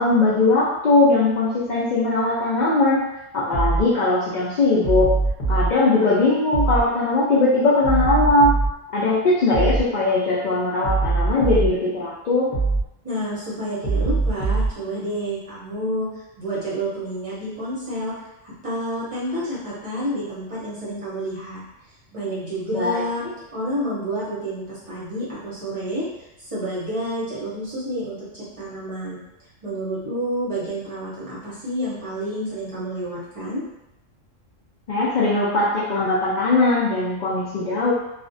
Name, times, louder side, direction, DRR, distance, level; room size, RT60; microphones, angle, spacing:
voice 1, 0.0-3.0 3.3-5.1 5.5-8.5 8.9-12.5 22.7-23.0 34.9-37.9, left 2 dB, 90° left, -9 dB, 0.4 m, -20 dB
sound 1, 3.5-3.9 4.8-5.7 6.5-6.9 7.8-8.7 9.5-9.9 10.8-11.7 12.5-12.9 13.8-14.7, right 3 dB, 40° left, 0.7 m, -21 dB
voice 2, 13.0-16.1 16.4-18.1 18.4-21.6 22.1-23.2 23.5-26.1 26.4-29.2 29.6-33.6, right 1 dB, 35° right, -9 dB, 0.6 m, -29 dB
2.4 x 2.0 x 2.5 m, 0.90 s
omnidirectional pair, 1.3 m